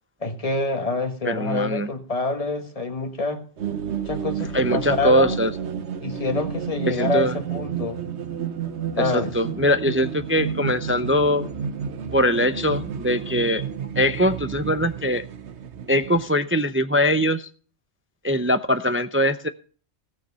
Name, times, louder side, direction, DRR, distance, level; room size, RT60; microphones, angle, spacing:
voice 1, 0.2-3.4 4.0-5.4 6.0-8.0 9.0-9.3, left 3 dB, 30° left, 1.5 m, -26 dB
voice 2, 1.2-1.9 4.5-5.5 6.9-7.3 9.0-11.5 12.1-13.6 14.0-15.3 15.9-17.5 18.2-19.5, equal, 15° right, 0.4 m, -22 dB
sound 1, 3.6-16.3, right 7 dB, 80° right, 1.2 m, -31 dB
17.5 x 6.5 x 5.5 m
omnidirectional pair, 1.1 m